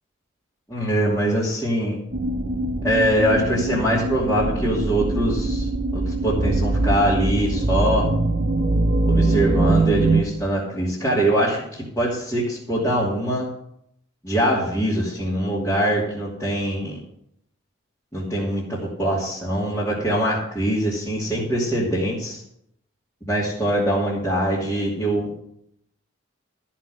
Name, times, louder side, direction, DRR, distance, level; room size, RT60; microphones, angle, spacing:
voice 1, 0.7-2.0 2.8-8.1 9.0-13.5 14.2-17.0 18.1-22.4 23.3-25.3, right 1 dB, 15° left, -9 dB, 2.6 m, -23 dB
sound 1, 2.1-10.2, right 2 dB, 45° right, 0.8 m, -22 dB
13.5 x 5.9 x 8.0 m, 0.72 s
head